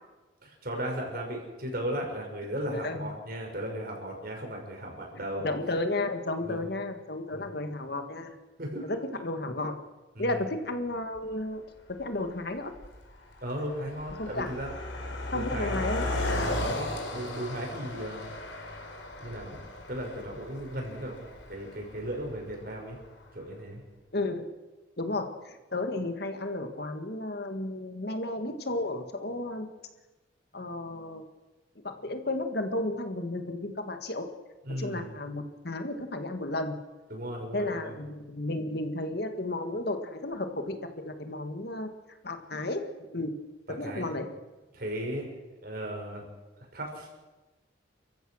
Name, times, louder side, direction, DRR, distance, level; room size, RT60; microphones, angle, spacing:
voice 1, 0.4-5.5 6.4-6.7 7.3-7.5 8.6-8.9 10.1-10.4 13.4-14.7 15.3-15.9 16.6-18.3 19.2-23.0 23.3-23.8 34.6-35.1 37.1-38.0 43.8-44.1 44.7-46.2 46.7-47.1, equal, 50° right, 1 dB, 5.9 m, -36 dB
voice 2, 2.7-3.1 5.4-8.4 8.8-9.8 10.2-11.6 12.0-12.7 14.2-14.5 15.3-16.0 24.1-24.5 25.0-29.7 30.5-31.2 31.8-34.3 34.8-36.8 37.5-40.8 41.0-41.9 42.2-42.8 43.1-43.3 43.7-44.3, left 2 dB, 55° left, 7 dB, 1.9 m, -33 dB
Car passing by, 11.2-11.3 12.0-12.3 12.6-23.0, left 1 dB, 75° left, 4.0 m, -36 dB
29.0 x 15.0 x 6.5 m, 1.2 s
head